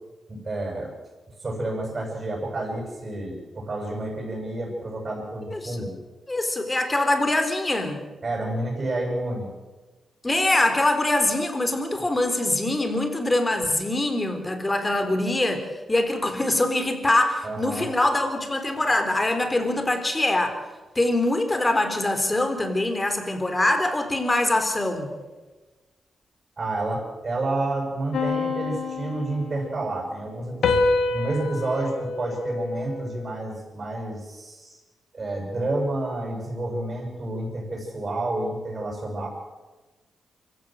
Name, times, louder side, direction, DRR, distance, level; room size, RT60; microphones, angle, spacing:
voice 1, 0.3-0.9 1.4-6.0 8.2-9.5 17.4-17.9 26.6-30.8 31.1-34.8 35.1-39.3, right 2 dB, 40° right, -1 dB, 7.7 m, -29 dB
voice 2, 6.3-8.0 10.2-20.6 21.0-25.1, left 2 dB, 20° left, 7 dB, 4.0 m, -23 dB
sound 1, 28.1-29.9 30.6-33.3, left 3 dB, 80° left, 2.2 m, -27 dB
24.5 x 16.0 x 7.7 m, 1.2 s
cardioid pair, 75°, 0 cm